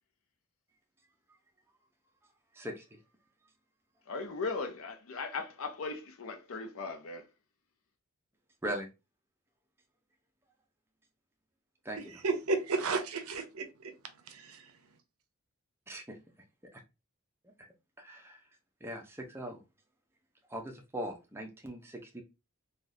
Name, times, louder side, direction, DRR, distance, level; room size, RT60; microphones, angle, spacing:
voice 1, 2.5-3.0 8.6-8.9 11.8-12.2 15.9-16.2 17.4-17.5 18.0-18.4 18.8-19.6 20.5-22.2, equal, 10° right, 0.5 m, -40 dB
voice 2, 4.1-7.3, left 4 dB, 65° left, 0.6 m, -38 dB
voice 3, 12.2-13.9 14.3-14.7, right 3 dB, 70° right, 0.6 m, -33 dB
3.4 x 2.3 x 2.5 m
head